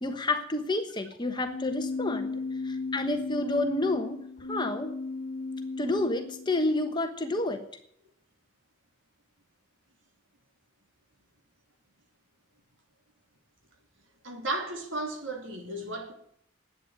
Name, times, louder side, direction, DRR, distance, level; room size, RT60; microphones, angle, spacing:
voice 1, 0.0-2.3 2.6-4.2 4.5-4.9 5.8-7.6, left 2 dB, 20° left, 1.2 m, -29 dB
Keyboard (musical), 1.4-7.4, left 3 dB, 45° left, 1.3 m, -35 dB
voice 2, 14.2-16.1, right 2 dB, 65° right, 3.1 m, -34 dB
11.0 x 8.9 x 9.1 m
head